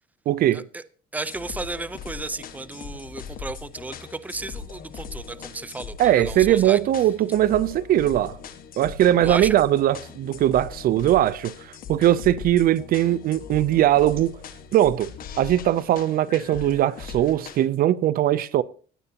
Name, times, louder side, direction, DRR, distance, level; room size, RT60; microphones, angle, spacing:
voice 1, 0.3-0.6 6.0-8.4 8.8-11.5 11.9-14.4 14.7-15.1 15.4-18.6, right 12 dB, 60° right, 0.5 m, -20 dB
voice 2, 1.1-6.8 9.2-9.6, right 3 dB, 10° right, 0.6 m, -34 dB
sound 1, 1.2-17.7, left 7 dB, 60° left, 1.4 m, -39 dB
16.0 x 9.8 x 2.8 m
cardioid pair, 110°, 17 cm